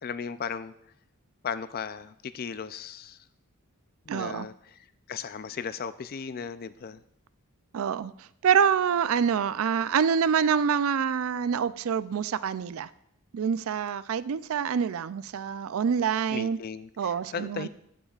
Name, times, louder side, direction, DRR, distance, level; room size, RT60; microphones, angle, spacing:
voice 1, 0.0-0.7 1.4-3.2 4.1-4.8 5.1-7.0 16.3-17.7, left 6 dB, 45° left, 0.4 m, -36 dB
voice 2, 4.1-4.5 7.7-8.1 8.4-12.9 13.3-16.6 17.0-17.7, right 7 dB, 70° right, 0.4 m, -26 dB
14.5 x 8.8 x 2.4 m
head